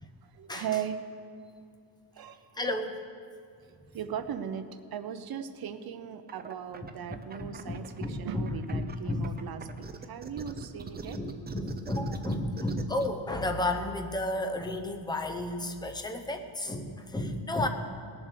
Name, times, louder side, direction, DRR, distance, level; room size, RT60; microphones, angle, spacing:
voice 1, 0.2-1.0 2.1-2.8 3.9-9.7 10.1-11.2, right 8 dB, 55° right, 10 dB, 0.8 m, -38 dB
voice 2, 2.6-3.0 7.4-8.8 9.1-9.4 11.1-17.7, left 1 dB, 10° left, 6 dB, 0.7 m, -32 dB
sound 1, 6.3-8.0 8.4-13.1, right 5 dB, 25° right, 0.6 m, -42 dB
19.5 x 7.4 x 6.6 m, 2.4 s
wide cardioid pair, 180°, 42 cm